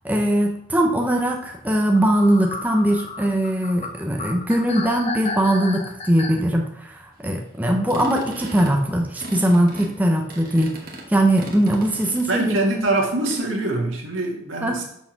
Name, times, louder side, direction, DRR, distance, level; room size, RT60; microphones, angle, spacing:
voice 1, 0.0-10.8 11.1-12.5 14.6-14.8, right 1 dB, 10° right, 2 dB, 0.7 m, -20 dB
sound 1, 1.9-6.4, left 3 dB, 30° left, 0.7 m, -33 dB
sound 2, 7.9-12.6 13.0-13.4, right 1 dB, 45° right, 1.3 m, -38 dB
voice 2, 12.3-14.8, right 2 dB, 85° right, 0 dB, 1.7 m, -23 dB
6.0 x 4.6 x 5.8 m, 0.75 s
head